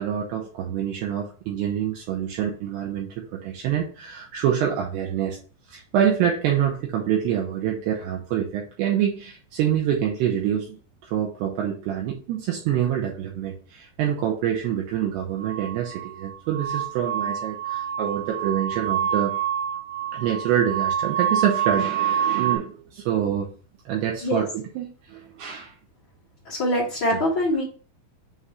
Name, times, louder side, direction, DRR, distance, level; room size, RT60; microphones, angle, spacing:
voice 1, 0.0-5.4 5.7-10.8 11.0-19.4 20.1-23.5 23.9-25.7 27.1-27.2, right 9 dB, 90° right, 1 dB, 2.4 m, -26 dB
sound 1, 15.4-22.6, right 9 dB, 70° right, 3.4 m, -27 dB
voice 2, 26.4-27.6, left 1 dB, 75° left, -8 dB, 1.1 m, -23 dB
7.9 x 2.8 x 4.8 m, 0.39 s
omnidirectional pair, 5.7 m